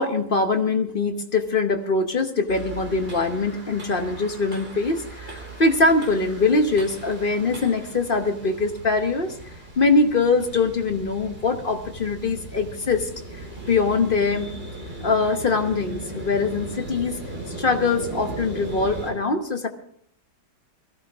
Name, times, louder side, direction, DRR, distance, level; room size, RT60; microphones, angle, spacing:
voice 1, 0.0-9.3 9.8-14.5 15.0-17.2 17.5-19.7, left 3 dB, 40° left, 6 dB, 0.9 m, -23 dB
sound 1, 2.5-19.1, right 1 dB, 30° right, 4.0 m, -38 dB
21.5 x 14.5 x 3.5 m, 0.70 s
omnidirectional pair, 1.9 m